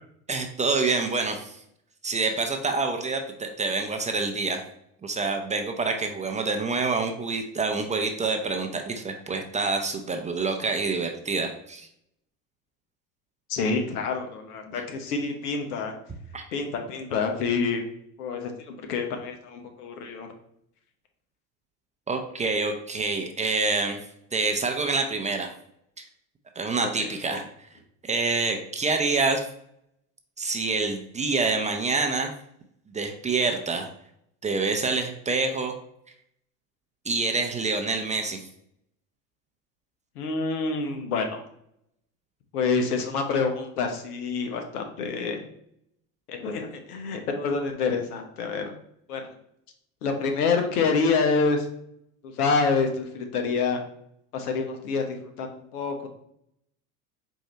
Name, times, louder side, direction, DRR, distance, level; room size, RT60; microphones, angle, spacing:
voice 1, 0.3-1.6 2.0-4.6 5.0-11.9 16.3-16.5 22.1-24.0 24.3-25.5 26.0-26.1 26.6-27.4 28.0-29.4 30.4-32.3 32.9-33.9 34.4-35.7 37.0-38.4, right 3 dB, 15° right, 4 dB, 0.5 m, -27 dB
voice 2, 13.5-15.9 16.5-17.8 18.2-20.3 26.8-27.4 40.2-41.4 42.5-45.4 46.3-48.7 49.1-49.3 50.0-51.7 52.2-53.8 54.3-56.1, left 4 dB, 80° left, 4 dB, 1.0 m, -27 dB
4.6 x 2.7 x 4.2 m, 0.73 s
hypercardioid pair, 80°, 45 cm